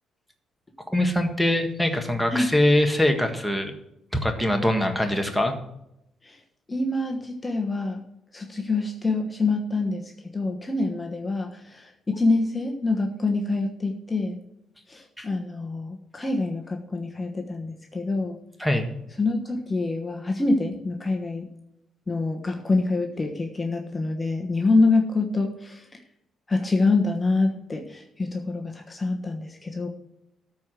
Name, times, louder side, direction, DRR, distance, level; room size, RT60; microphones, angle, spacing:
voice 1, 0.9-3.7 4.2-5.6 15.2-15.3 18.6-18.8, left 1 dB, ahead, 5 dB, 1.6 m, -23 dB
voice 2, 6.7-8.0 8.3-10.0 10.3-14.4 14.9-18.4 19.2-21.5 22.1-25.9 26.5-29.9, left 3 dB, 20° left, 2 dB, 1.2 m, -26 dB
13.0 x 4.8 x 7.5 m, 0.83 s
cardioid pair, 90°, 0 cm